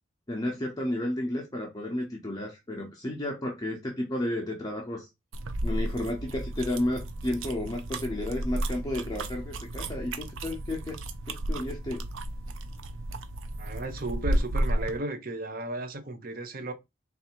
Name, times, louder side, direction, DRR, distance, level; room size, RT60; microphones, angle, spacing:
voice 1, 0.3-5.1 5.6-11.0 11.3-12.0, left 1 dB, 20° left, 0.8 m, -32 dB
sound 1, 5.3-15.0, right 1 dB, 85° right, 0.6 m, -33 dB
voice 2, 13.6-16.7, right 2 dB, 45° right, 0.8 m, -34 dB
3.4 x 2.7 x 4.4 m
head